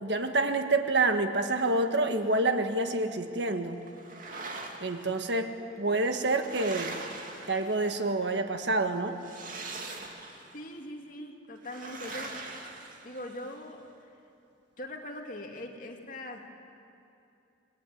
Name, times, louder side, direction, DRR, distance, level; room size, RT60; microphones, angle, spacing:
voice 1, 0.0-3.8 4.8-7.0 7.5-9.2, right 2 dB, 65° right, 7 dB, 1.7 m, -28 dB
sound 1, 3.9-5.1 5.9-8.1 9.2-10.6 11.6-13.5, right 3 dB, 45° right, 2.5 m, -42 dB
voice 2, 10.5-12.5 13.0-14.1 14.8-16.5, left 1 dB, 45° left, 2 dB, 2.6 m, -41 dB
27.0 x 21.0 x 9.4 m, 2.7 s
head